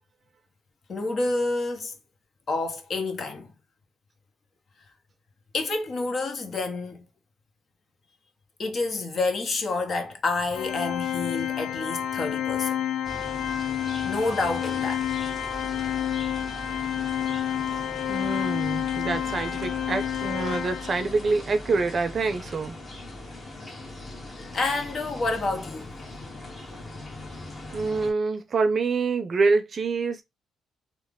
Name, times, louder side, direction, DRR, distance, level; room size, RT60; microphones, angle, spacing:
voice 1, 0.9-1.9 2.5-3.5 5.5-7.0 8.6-12.8 14.0-15.1 24.4-25.9, left 3 dB, 50° left, 0.9 m, -28 dB
Organ, 10.5-21.3, left 10 dB, 70° left, 0.4 m, -29 dB
sound 1, 13.0-28.1, left 1 dB, 30° left, 1.2 m, -40 dB
voice 2, 18.1-22.8 27.7-30.2, right 4 dB, 40° right, 0.5 m, -26 dB
3.1 x 2.1 x 3.6 m
cardioid pair, 90°, 0 cm